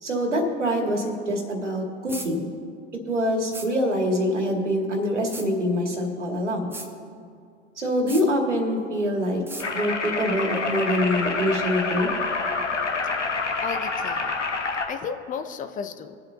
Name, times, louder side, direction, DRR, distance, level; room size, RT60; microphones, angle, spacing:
voice 1, 0.0-2.5 3.1-6.7 7.8-9.4 9.7-12.1, equal, 85° right, 2 dB, 2.1 m, -25 dB
sound 1, 2.1-2.3 3.5-3.7 5.3-5.5 6.7-6.9 8.1-8.3 9.5-9.7, right 2 dB, 5° right, 1.0 m, -36 dB
sound 2, 9.6-14.9, left 4 dB, 90° left, 1.3 m, -27 dB
voice 2, 13.6-14.4 14.9-16.2, left 6 dB, 25° left, 8 dB, 0.6 m, -34 dB
22.0 x 7.7 x 2.8 m, 2.3 s
figure-of-eight pair, 90°, 35 cm